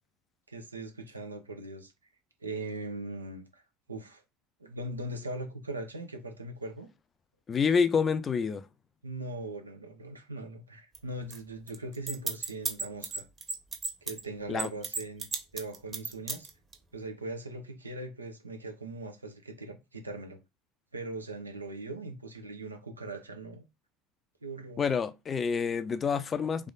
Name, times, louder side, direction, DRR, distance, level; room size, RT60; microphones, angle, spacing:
voice 1, 0.5-1.9 2.4-3.6 3.9-4.2 4.6-6.9 9.0-13.2 14.0-16.5 16.9-20.4 20.9-23.6 24.4-24.9, right 2 dB, 85° right, 0.8 m, -40 dB
voice 2, 7.5-8.6 14.5-14.7 24.8-26.7, left 6 dB, 30° left, 0.5 m, -28 dB
sound 1, 11.0-11.1 11.3-11.4 11.7-14.2 14.6-16.7, right 4 dB, 25° right, 1.1 m, -33 dB
3.4 x 3.4 x 4.0 m
figure-of-eight pair, 70°, 0 cm